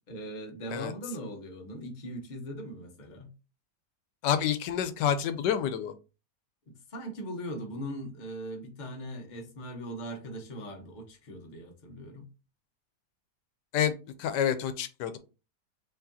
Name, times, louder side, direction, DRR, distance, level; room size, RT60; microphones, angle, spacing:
voice 1, 0.1-3.3 6.7-12.3, equal, 35° left, 0.9 m, -40 dB
voice 2, 4.2-5.9 13.7-13.9 14.2-15.2, left 9 dB, 85° left, 1.2 m, -28 dB
4.9 x 3.3 x 2.7 m
omnidirectional pair, 1.8 m